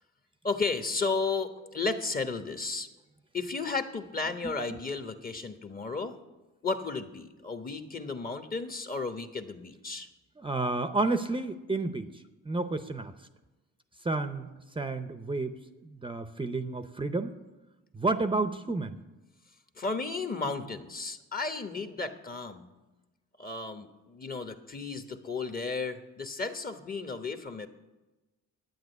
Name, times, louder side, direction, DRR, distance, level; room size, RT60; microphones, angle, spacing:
voice 1, 0.4-2.9 3.3-6.2 6.6-10.1 19.8-22.7 23.4-27.7, left 4 dB, 30° left, 8 dB, 1.2 m, -33 dB
voice 2, 10.4-13.1 14.0-14.5 14.8-15.5 15.8-17.4 17.9-19.0, right 3 dB, 15° right, 9 dB, 0.7 m, -31 dB
10.5 x 9.1 x 8.0 m, 1.1 s
cardioid pair, 90°, 30 cm